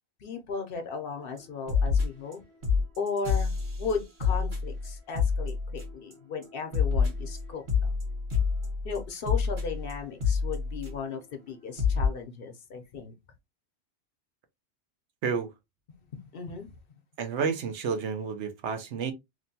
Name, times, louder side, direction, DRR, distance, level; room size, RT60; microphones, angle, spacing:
voice 1, 0.2-2.4 3.0-3.5 3.8-7.9 8.8-13.1 15.9-16.7, left 5 dB, 60° left, 0.7 m, -36 dB
sound 1, 1.4-1.5 1.7-2.3 2.6-6.1 6.4-11.2 11.5-11.6 11.8-12.1, left 5 dB, 60° right, 1.5 m, -27 dB
voice 2, 17.2-19.1, right 6 dB, 80° right, 0.9 m, -30 dB
2.9 x 2.1 x 2.6 m
omnidirectional pair, 1.2 m